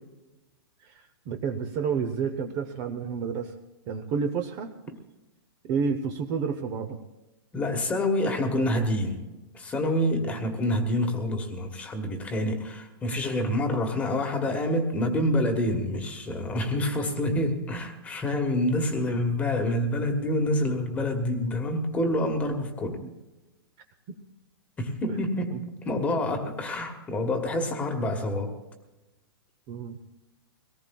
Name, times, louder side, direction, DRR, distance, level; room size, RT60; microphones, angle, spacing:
voice 1, 0.8-3.5 3.9-4.7 5.6-7.0 8.2-8.3 8.6-8.8 10.2-10.5 16.7-16.8 17.2-17.3 19.0-19.3 21.3-21.7 23.0-23.1 24.1-24.2 25.1-25.2 25.5-25.6 29.7-30.0, right 6 dB, 25° right, 6 dB, 0.7 m, -31 dB
voice 2, 7.5-9.2 9.5-23.0 24.8-28.6, left 1 dB, 10° left, 4 dB, 1.3 m, -27 dB
23.5 x 18.0 x 2.3 m, 1.1 s
hypercardioid pair, 165°, 13 cm